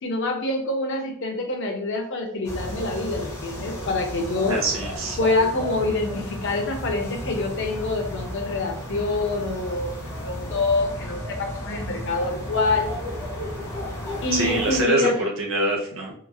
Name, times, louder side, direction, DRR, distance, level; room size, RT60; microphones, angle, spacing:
voice 1, 0.0-4.6 5.2-12.9 14.2-15.2, left 2 dB, 55° left, 3 dB, 0.5 m, -26 dB
sound 1, 2.4-14.8, equal, 10° left, 0.7 m, -33 dB
voice 2, 4.5-5.2 14.3-16.1, right 2 dB, 60° right, -1 dB, 0.7 m, -24 dB
2.9 x 2.4 x 2.3 m, 0.67 s
head